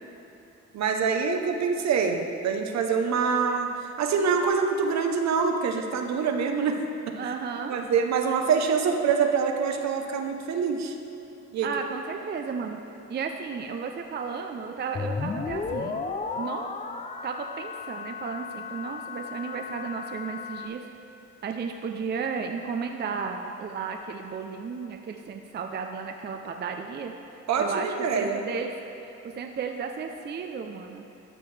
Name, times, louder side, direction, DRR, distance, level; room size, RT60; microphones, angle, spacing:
voice 1, 0.7-3.7 4.0-6.8 7.2-7.3 7.7-10.9 11.5-11.7 27.5-28.4, right 6 dB, 65° right, 4 dB, 0.8 m, -25 dB
voice 2, 7.2-7.8 11.6-12.8 13.1-16.0 16.4-16.7 17.2-20.8 21.4-27.1 27.6-28.7 29.0-31.1, right 5 dB, 35° right, 4 dB, 0.5 m, -34 dB
sound 1, 14.9-20.7, left 4 dB, 25° left, 0.4 m, -34 dB
13.0 x 6.1 x 3.3 m, 2.9 s
cardioid pair, 90°, 30 cm